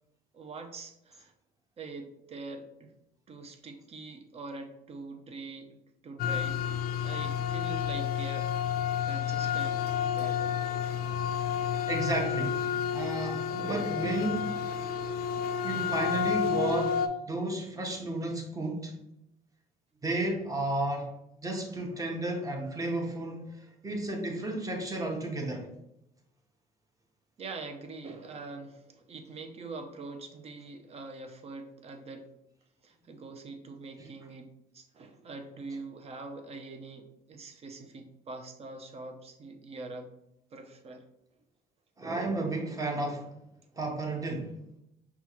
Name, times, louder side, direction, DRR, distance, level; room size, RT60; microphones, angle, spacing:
voice 1, 0.3-1.3 1.8-2.9 3.3-8.5 9.0-10.6 27.4-32.3 32.8-40.1 40.5-41.1, right 3 dB, 35° right, 6 dB, 0.6 m, -44 dB
sound 1, 6.2-17.1, left 8 dB, 65° left, 0.4 m, -30 dB
voice 2, 11.9-12.6 12.9-14.5 15.6-17.0 17.3-18.9 20.0-21.1 21.4-25.7 34.0-34.1 42.0-43.3 43.7-44.6, right 2 dB, 20° right, 1 dB, 0.9 m, -32 dB
5.5 x 2.4 x 3.0 m, 0.84 s
cardioid pair, 110°, 17 cm